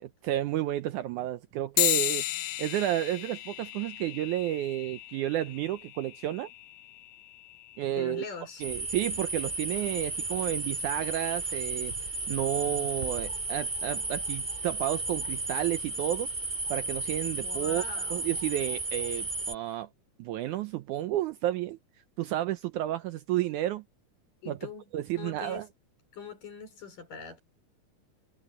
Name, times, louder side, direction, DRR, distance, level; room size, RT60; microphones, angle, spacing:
voice 1, 0.0-2.2 2.6-6.5 7.8-8.2 8.6-11.9 12.3-16.3 16.7-17.8 18.1-19.9 20.2-21.8 22.2-23.8 24.5-24.6 24.9-25.7, right 13 dB, 75° right, 1.9 m, -31 dB
sound 1, 1.8-11.6, left 15 dB, 90° left, 2.5 m, -36 dB
voice 2, 7.9-8.7 17.3-18.4 24.4-25.7 26.1-27.4, left 5 dB, 65° left, 6.7 m, -43 dB
sound 2, 8.6-19.5, right 2 dB, 15° right, 2.8 m, -33 dB
omnidirectional pair, 4.0 m